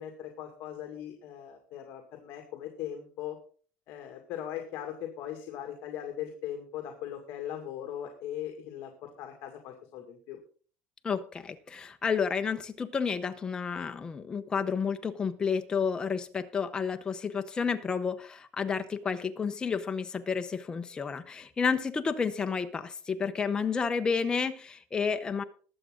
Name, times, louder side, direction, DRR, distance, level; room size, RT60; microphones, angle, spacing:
voice 1, 0.0-3.4 3.9-10.4, left 10 dB, 50° left, 3 dB, 2.2 m, -39 dB
voice 2, 11.0-25.4, left 6 dB, 15° left, 7 dB, 0.9 m, -31 dB
21.0 x 7.6 x 3.9 m, 0.42 s
cardioid pair, 175°, 5 cm